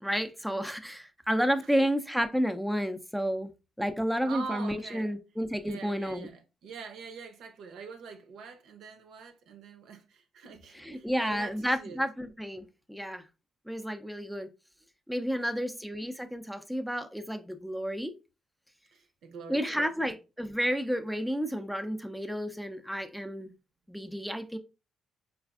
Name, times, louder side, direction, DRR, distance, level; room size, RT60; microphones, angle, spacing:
voice 1, 0.0-3.5 3.8-6.3 10.7-13.2 13.7-14.5 15.1-18.1 19.5-23.5 23.9-24.6, equal, ahead, 0.4 m, -31 dB
voice 2, 4.2-5.1 5.6-12.0 15.3-15.8 18.9-20.1, right 5 dB, 75° right, 0.6 m, -44 dB
4.0 x 2.4 x 2.3 m
cardioid pair, 90°, 0 cm